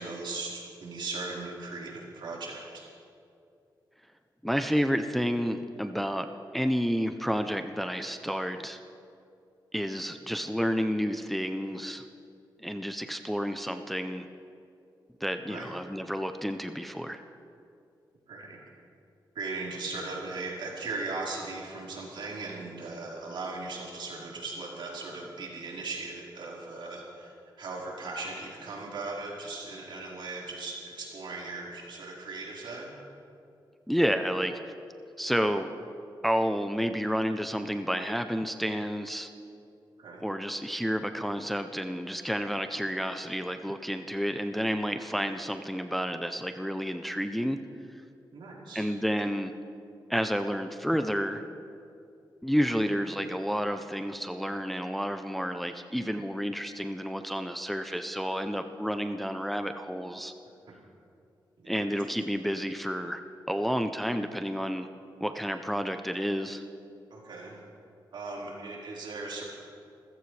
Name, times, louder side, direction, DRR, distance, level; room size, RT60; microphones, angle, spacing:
voice 1, 0.0-2.9 15.5-15.7 18.3-18.6 19.3-32.9 40.0-40.2 48.3-48.9 61.6-61.8 67.1-67.6 68.1-69.4, right 3 dB, 80° right, -5 dB, 4.4 m, -38 dB
voice 2, 4.4-6.3 6.5-8.8 9.7-12.0 12.6-14.3 15.2-17.2 33.9-34.7 35.2-35.7 36.2-39.3 40.2-47.6 48.7-49.5 50.1-51.4 52.4-60.3 61.7-63.2 63.5-64.9 65.2-66.6, equal, ahead, 7 dB, 0.5 m, -30 dB
27.5 x 15.0 x 3.3 m, 2.5 s
wide cardioid pair, 155°, 8 cm